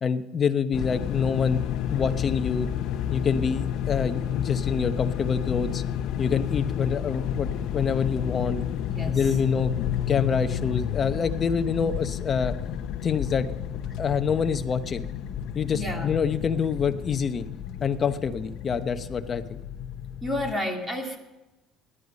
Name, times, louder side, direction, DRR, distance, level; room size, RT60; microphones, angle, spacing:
voice 1, 0.0-1.6 1.9-2.7 3.1-5.8 6.2-8.6 9.1-9.7 10.1-12.5 13.0-13.5 14.0-15.0 15.5-17.4 17.8-19.6, left 6 dB, 30° left, 9 dB, 0.9 m, -26 dB
sound 1, 0.7-20.5, left 9 dB, 60° left, 0.8 m, -31 dB
voice 2, 8.9-9.4 15.7-16.1 20.2-21.2, left 1 dB, 15° right, 3 dB, 2.4 m, -31 dB
18.0 x 11.0 x 5.3 m, 1.0 s
cardioid pair, 145°, 0 cm